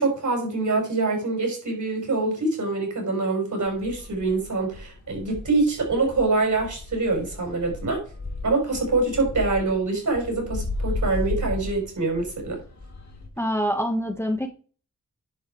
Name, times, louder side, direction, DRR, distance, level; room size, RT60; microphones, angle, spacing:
voice 1, 0.0-8.0 8.4-12.6, right 3 dB, 70° right, 2 dB, 5.3 m, -25 dB
sound 1, 3.6-13.3, left 2 dB, 60° left, 2.5 m, -35 dB
voice 2, 13.4-14.5, equal, 10° left, 4 dB, 1.0 m, -25 dB
10.5 x 5.2 x 4.7 m, 0.39 s
wide cardioid pair, 110°, 31 cm